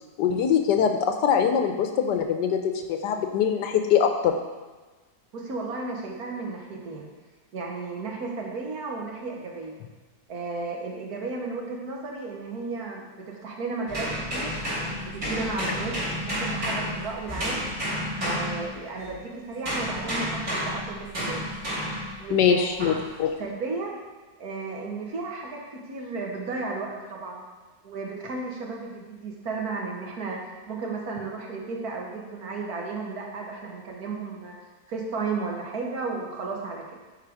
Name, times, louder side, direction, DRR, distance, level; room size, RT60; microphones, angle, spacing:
voice 1, 0.2-4.3 22.3-23.3, left 7 dB, 85° left, 5 dB, 1.4 m, -23 dB
voice 2, 5.3-7.1 7.5-9.7 10.3-14.5 15.0-15.9 16.2-17.6 18.2-21.5 22.2-22.7 23.4-23.9 24.4-27.4 27.8-30.4 30.7-34.6 34.9-36.8, right 3 dB, 65° right, -1 dB, 1.7 m, -34 dB
sound 1, 13.9-19.2 19.7-22.2 22.8-23.1, equal, 40° right, 3.1 m, -30 dB
9.8 x 4.2 x 4.8 m, 1.3 s
omnidirectional pair, 1.8 m